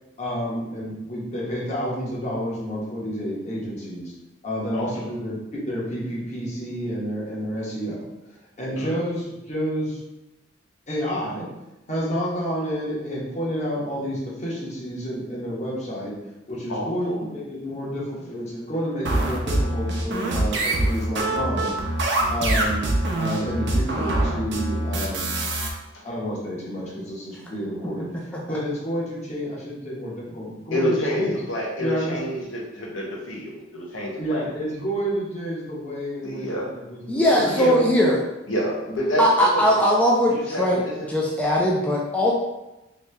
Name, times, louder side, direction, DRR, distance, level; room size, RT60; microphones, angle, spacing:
voice 1, 0.2-4.1 4.4-8.1 8.6-10.0 10.9-11.5 11.9-16.1 16.5-21.7 22.3-22.9 23.2-25.3 26.0-31.3 31.8-32.3 34.2-37.8, equal, 35° left, -6 dB, 1.0 m, -29 dB
voice 2, 4.7-5.1 8.8-9.0 16.7-17.2 30.7-34.5 36.2-36.7 37.5-37.8 38.5-39.8 40.3-40.9, equal, 85° left, -3 dB, 0.9 m, -28 dB
sound 1, 19.0-25.7, right 2 dB, 65° right, 0.6 m, -24 dB
voice 3, 37.1-38.2 39.2-40.8 41.1-42.3, equal, 5° left, -4 dB, 0.3 m, -20 dB
3.1 x 2.7 x 3.3 m, 0.98 s
head